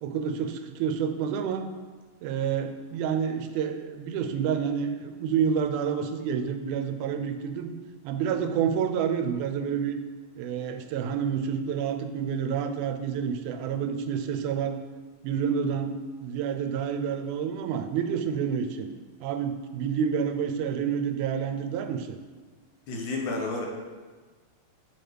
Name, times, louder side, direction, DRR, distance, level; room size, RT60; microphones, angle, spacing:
voice 1, 0.0-1.7 2.2-7.7 8.0-10.0 10.4-14.8 15.2-18.9 19.2-22.2, right 7 dB, 90° right, 7 dB, 2.0 m, -29 dB
voice 2, 22.9-23.7, left 3 dB, 75° left, 0 dB, 2.3 m, -30 dB
8.5 x 3.2 x 4.6 m, 1.4 s
omnidirectional pair, 3.4 m